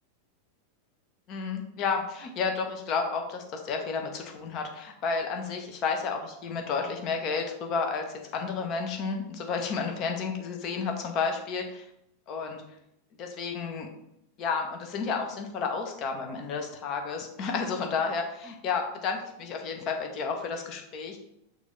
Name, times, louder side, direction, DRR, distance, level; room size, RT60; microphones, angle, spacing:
voice 1, 1.3-11.9 12.3-12.6 13.2-13.9 14.4-21.2, left 5 dB, 35° left, 4 dB, 0.8 m, -31 dB
6.3 x 2.6 x 3.2 m, 0.78 s
figure-of-eight pair, 90°, 0 cm